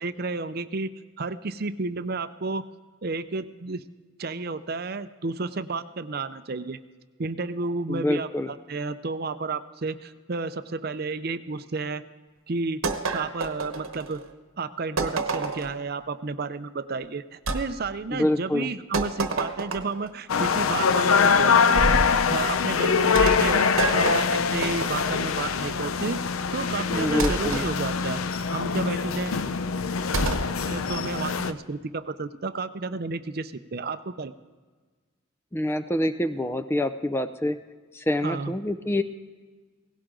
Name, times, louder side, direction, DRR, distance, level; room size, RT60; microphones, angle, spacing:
voice 1, 0.0-2.6 3.0-3.8 4.2-6.8 7.2-12.0 12.5-12.8 13.1-14.2 14.6-21.9 22.3-26.2 26.5-28.2 28.5-29.4 30.7-34.3 38.2-38.5, right 3 dB, 50° right, 12 dB, 0.6 m, -31 dB
voice 2, 7.9-8.5 18.1-18.7 26.9-27.6 35.5-37.6 37.9-39.0, left 1 dB, 10° left, 10 dB, 0.5 m, -26 dB
sound 1, 12.8-14.3 15.0-15.8 17.5-17.6 18.9-20.1 21.7-22.2 23.1-25.3 27.2-27.7 30.1-30.5, right 3 dB, 80° right, 1.1 m, -29 dB
sound 2, 20.3-31.5, left 5 dB, 85° left, 0.6 m, -24 dB
17.5 x 16.5 x 3.8 m, 1.4 s
head